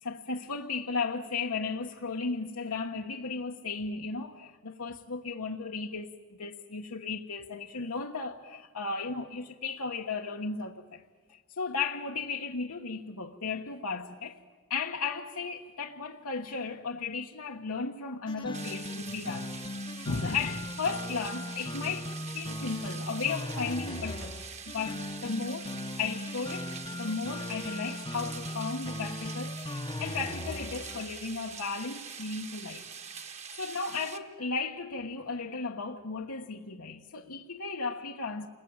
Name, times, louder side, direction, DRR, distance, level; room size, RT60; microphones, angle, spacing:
voice 1, 0.0-6.1 6.4-11.0 11.3-14.4 14.7-19.5 20.0-22.1 22.3-24.3 24.7-25.7 26.0-26.7 27.0-32.9 33.6-38.5, left 4 dB, 85° left, 1.2 m, -35 dB
sound 1, 18.3-31.1, left 1 dB, 20° left, 0.8 m, -38 dB
sound 2, 18.5-34.2, right 6 dB, 30° right, 1.2 m, -44 dB
29.5 x 21.0 x 8.8 m
head